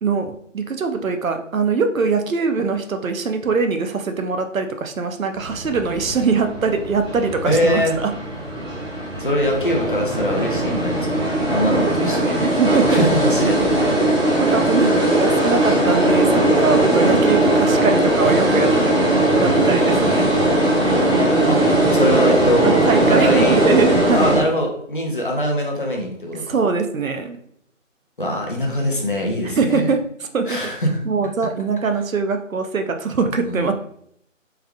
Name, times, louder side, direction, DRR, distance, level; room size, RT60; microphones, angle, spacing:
voice 1, 0.0-8.1 11.7-13.0 14.4-19.0 19.4-20.3 22.6-24.4 26.5-27.4 29.4-30.0 30.3-30.6 31.1-33.7, right 4 dB, 85° right, 7 dB, 0.6 m, -22 dB
sound 1, 5.3-24.4, right 1 dB, 20° right, 0.9 m, -19 dB
voice 2, 7.4-8.0 9.2-12.4 12.9-14.0 14.8-15.0 21.5-21.6 21.9-23.6 24.1-26.4 28.2-29.9 30.5-31.3 33.5-33.7, equal, 40° left, 0 dB, 0.7 m, -22 dB
3.4 x 2.2 x 3.5 m, 0.70 s
figure-of-eight pair, 165°, 39 cm